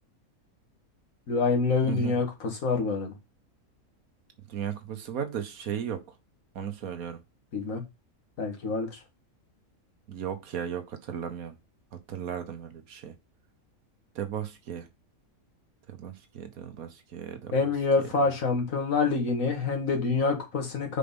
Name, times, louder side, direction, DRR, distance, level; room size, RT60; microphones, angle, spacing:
voice 1, 1.3-3.1 7.5-7.8 8.4-9.0 17.5-21.0, left 4 dB, 65° left, 2.0 m, -26 dB
voice 2, 4.5-6.0 6.5-7.2 10.1-11.5 12.1-13.1 14.1-14.9 15.9-17.5, right 9 dB, 75° right, 1.4 m, -35 dB
5.2 x 4.6 x 5.2 m
omnidirectional pair, 1.5 m